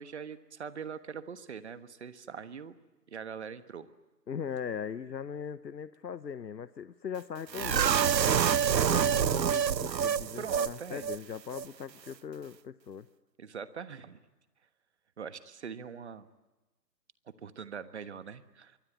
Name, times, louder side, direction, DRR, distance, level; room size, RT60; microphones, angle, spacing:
voice 1, 0.0-2.7 3.1-3.9 8.7-9.0 10.4-11.0 13.4-14.2 15.2-16.3 17.3-18.8, right 6 dB, 40° right, 12 dB, 1.4 m, -42 dB
voice 2, 4.3-8.0 8.7-13.1, left 7 dB, 80° left, 14 dB, 1.0 m, -39 dB
sound 1, 7.5-10.7 11.0-11.2 11.5-11.7, right 8 dB, 80° right, 0.8 m, -27 dB
24.5 x 24.0 x 9.3 m, 1.1 s
figure-of-eight pair, 155°, 50 cm